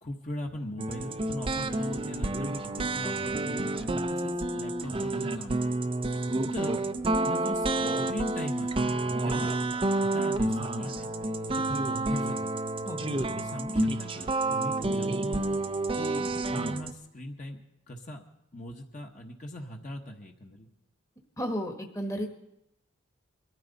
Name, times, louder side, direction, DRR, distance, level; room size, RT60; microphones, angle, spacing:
voice 1, 0.0-5.9 6.5-6.8 7.2-7.7 8.1-11.1 11.5-12.5 13.0-15.6 16.0-17.6 17.9-18.2 18.5-20.7, left 1 dB, 35° left, 1 dB, 1.1 m, -40 dB
sound 1, 0.8-16.9, right 2 dB, 25° right, 0.5 m, -29 dB
voice 2, 21.4-22.3, equal, 15° left, 3 dB, 1.2 m, -33 dB
22.5 x 13.5 x 4.0 m, 0.80 s
head